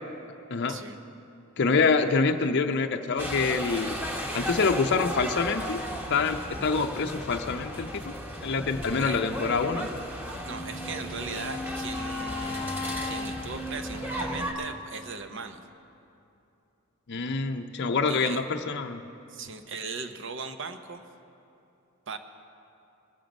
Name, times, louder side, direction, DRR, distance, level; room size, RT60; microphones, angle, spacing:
voice 1, 1.6-3.9 4.3-5.8 6.1-8.2 8.4-9.9 17.1-19.0, left 4 dB, 55° left, 5 dB, 0.5 m, -26 dB
sound 1, 3.2-14.5, equal, 10° right, 1.0 m, -35 dB
Wind instrument woodwind instrument, 10.4-15.3, left 2 dB, 15° left, 0.7 m, -37 dB
voice 2, 10.4-12.7 13.0-15.6 18.1-18.4 19.3-21.0 22.1-22.2, right 4 dB, 60° right, 8 dB, 0.8 m, -38 dB
22.0 x 7.3 x 5.2 m, 2.8 s
head